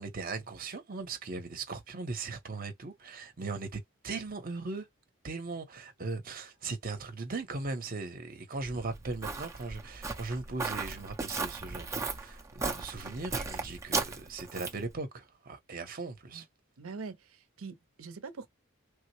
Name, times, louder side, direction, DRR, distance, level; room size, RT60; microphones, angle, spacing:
voice 1, 0.0-4.9 5.2-16.4, right 3 dB, 40° right, 0.8 m, -38 dB
Walk footsteps, 8.6-14.9, right 4 dB, 15° right, 0.5 m, -36 dB
voice 2, 16.8-18.5, right 4 dB, 75° right, 0.6 m, -43 dB
3.4 x 2.1 x 3.1 m
head